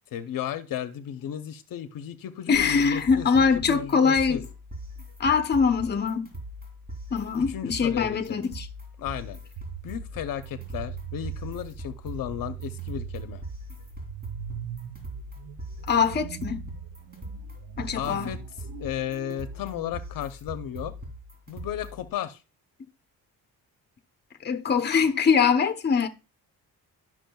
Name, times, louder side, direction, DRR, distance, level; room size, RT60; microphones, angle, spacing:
voice 1, 0.1-4.4 7.4-8.4 9.0-9.4 9.8-13.4 18.0-18.4 18.8-20.9 21.5-22.4, left 10 dB, 70° left, 0.7 m, -34 dB
voice 2, 2.5-4.4 5.2-6.3 7.1-8.7 15.9-16.6 17.8-18.4 24.4-26.1, left 6 dB, 30° left, 0.8 m, -23 dB
sound 1, 2.5-22.1, equal, 25° right, 2.5 m, -41 dB
sound 2, 9.6-19.9, right 13 dB, 75° right, 0.6 m, -41 dB
12.0 x 6.0 x 2.3 m
cardioid pair, 140°, 36 cm